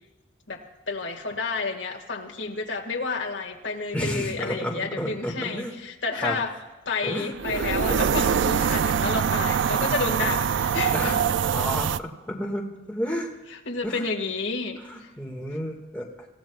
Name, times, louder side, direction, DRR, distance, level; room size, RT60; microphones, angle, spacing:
voice 1, 0.5-6.5 6.9-11.1 13.5-15.1, left 4 dB, 85° left, 1 dB, 1.9 m, -30 dB
voice 2, 3.9-5.7 6.2-6.4 7.0-8.3 10.9-11.2 11.5-13.3 13.8-14.1 14.8-16.3, equal, 10° left, -1 dB, 1.9 m, -32 dB
sound 1, 7.4-12.0, right 7 dB, 80° right, 0.4 m, -24 dB
26.0 x 16.0 x 2.4 m, 1.2 s
head